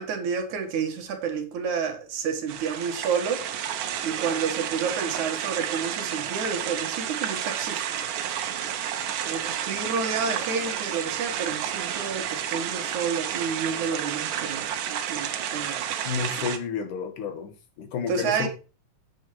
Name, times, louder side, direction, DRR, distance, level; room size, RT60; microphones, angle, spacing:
voice 1, 0.0-3.4 4.0-8.0 9.3-15.9 18.1-18.5, right 6 dB, 70° right, 2.9 m, -30 dB
sound 1, 2.5-16.6, right 9 dB, 90° right, 2.7 m, -31 dB
voice 2, 16.0-18.5, left 6 dB, 75° left, 3.1 m, -31 dB
8.2 x 7.7 x 4.6 m
omnidirectional pair, 3.7 m